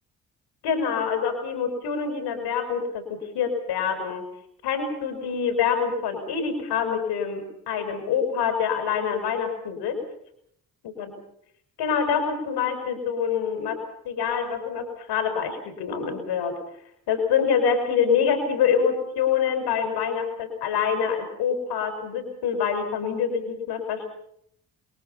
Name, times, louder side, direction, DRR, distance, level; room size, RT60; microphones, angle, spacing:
voice 1, 0.6-4.2 4.6-10.0 11.0-11.1 11.8-13.8 14.0-16.5 17.1-24.1, left 7 dB, 60° left, 7 dB, 5.7 m, -26 dB
28.5 x 23.0 x 5.8 m, 0.71 s
figure-of-eight pair, 40°, 44 cm